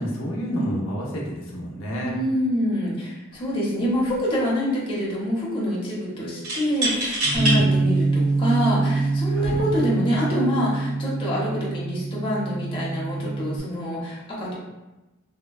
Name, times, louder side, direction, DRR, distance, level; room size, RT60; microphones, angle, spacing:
voice 1, 0.0-2.2 7.2-7.7 9.3-9.6, equal, 70° left, -3 dB, 0.6 m, -29 dB
voice 2, 2.1-14.6, equal, 25° left, -5 dB, 0.7 m, -26 dB
sound 1, 3.3-3.5 3.9-4.5 6.4-7.6 8.3-8.4 9.3-9.6, right 1 dB, 80° right, 1.3 m, -26 dB
Bass guitar, 7.3-13.6, right 3 dB, 5° right, 0.8 m, -25 dB
3.4 x 2.2 x 2.3 m, 1.1 s
head